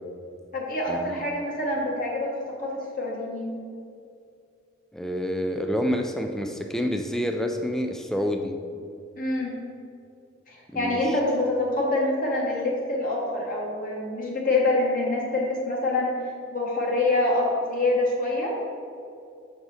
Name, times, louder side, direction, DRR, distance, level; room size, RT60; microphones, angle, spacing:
voice 1, 0.5-2.3 2.6-3.5 9.2-9.5 10.5-16.1 16.5-18.6, left 2 dB, 45° left, -3 dB, 1.0 m, -26 dB
voice 2, 4.9-8.6 10.7-11.2, equal, ahead, 4 dB, 0.3 m, -28 dB
5.9 x 4.9 x 4.1 m, 2.4 s
head